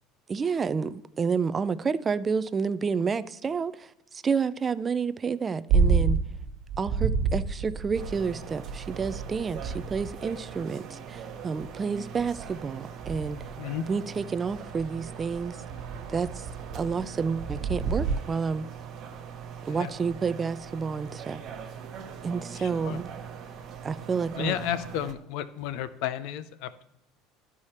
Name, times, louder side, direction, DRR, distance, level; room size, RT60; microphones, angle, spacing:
voice 1, 0.3-3.9 4.2-6.2 6.8-13.4 13.9-15.6 16.1-16.5 16.7-18.7 19.6-21.4 22.2-23.1 23.8-24.5, right 5 dB, 20° right, 0.3 m, -29 dB
sound 1, 5.7-10.6 11.6-11.7 12.2-18.2, right 5 dB, 70° right, 1.5 m, -30 dB
sound 2, 7.9-25.1, right 7 dB, 35° right, 1.1 m, -42 dB
voice 2, 22.5-23.0 24.3-26.8, left 11 dB, 65° left, 0.6 m, -33 dB
12.5 x 4.8 x 4.2 m
cardioid pair, 160°, 0 cm